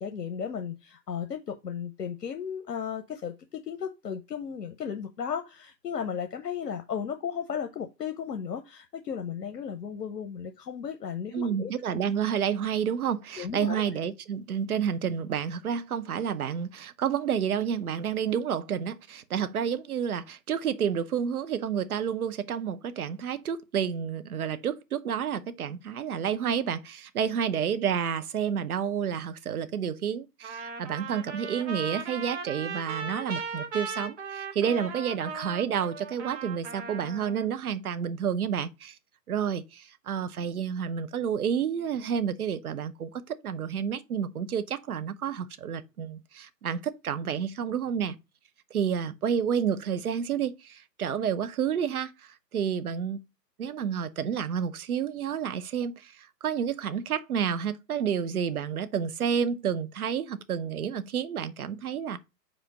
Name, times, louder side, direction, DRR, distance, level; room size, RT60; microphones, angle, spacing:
voice 1, 0.0-11.7 13.4-13.8, left 7 dB, 75° left, 0.9 m, -35 dB
voice 2, 11.3-39.0 39.3-48.2 48.7-52.1 52.5-53.2 53.6-62.2, right 8 dB, 60° right, 0.8 m, -30 dB
Trumpet, 30.4-37.5, right 4 dB, 40° right, 1.5 m, -37 dB
5.3 x 4.2 x 6.0 m
figure-of-eight pair, 135°, 50 cm